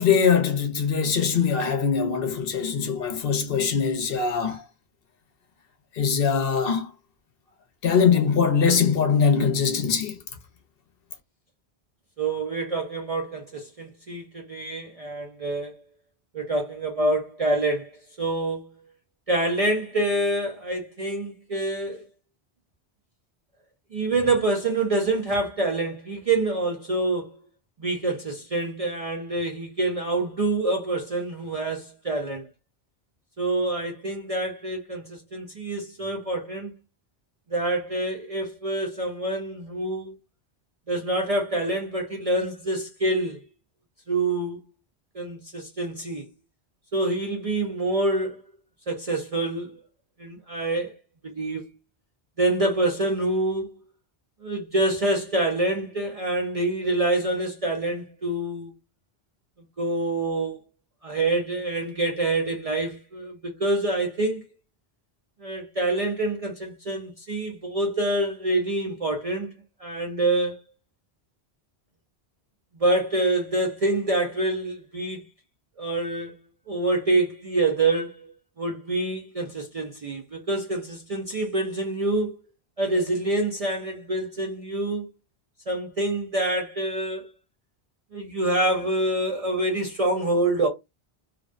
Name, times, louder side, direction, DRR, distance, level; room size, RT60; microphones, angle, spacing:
voice 1, 0.0-4.6 6.0-6.9 7.8-10.1, left 6 dB, 65° left, 0.8 m, -22 dB
voice 2, 12.2-15.7 16.3-18.7 19.3-22.0 23.9-27.4 27.8-32.5 33.4-36.7 37.5-40.2 40.9-43.4 44.1-44.6 45.1-46.3 46.9-48.4 48.9-49.8 50.2-50.9 51.2-51.7 52.4-53.7 54.4-58.7 59.8-60.6 61.0-64.4 65.4-69.5 69.8-70.6 72.8-75.2 75.8-76.4 76.7-78.3 78.6-82.3 82.8-85.1 85.7-87.3 88.1-90.7, right 2 dB, 50° right, 0.4 m, -26 dB
2.4 x 2.1 x 2.4 m
omnidirectional pair, 1.1 m